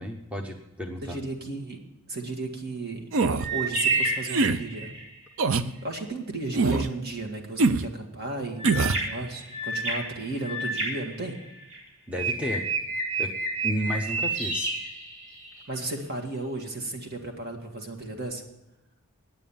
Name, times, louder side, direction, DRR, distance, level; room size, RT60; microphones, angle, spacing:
voice 1, 0.0-1.2 12.1-12.6 13.2-13.3 13.6-14.7, equal, 5° right, 2 dB, 0.8 m, -32 dB
voice 2, 1.0-1.8 2.1-3.1 3.5-4.9 5.8-11.4 15.7-18.4, right 2 dB, 50° right, 2 dB, 1.9 m, -34 dB
sound 1, 3.1-3.5 4.3-4.6 5.4-5.7 6.5-6.9 7.6-7.9 8.6-9.0, right 3 dB, 65° right, 0.6 m, -23 dB
sound 2, 3.4-5.1 8.6-11.8 12.2-15.6, right 2 dB, 90° right, 4.5 m, -30 dB
9.6 x 9.1 x 7.1 m, 0.93 s
head